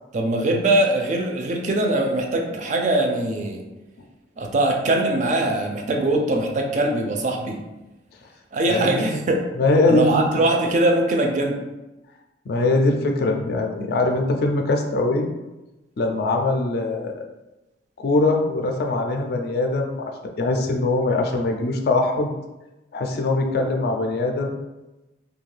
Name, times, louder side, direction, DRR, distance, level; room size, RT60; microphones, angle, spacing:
voice 1, 0.1-3.6 4.4-7.6 8.5-9.5 9.9-11.6, right 2 dB, 40° right, 2 dB, 0.3 m, -22 dB
voice 2, 8.7-9.2 9.6-10.4 12.5-15.3 16.0-17.2 18.0-22.3 22.9-24.5, left 2 dB, 55° left, 3 dB, 0.3 m, -22 dB
2.5 x 2.2 x 3.2 m, 1.0 s
head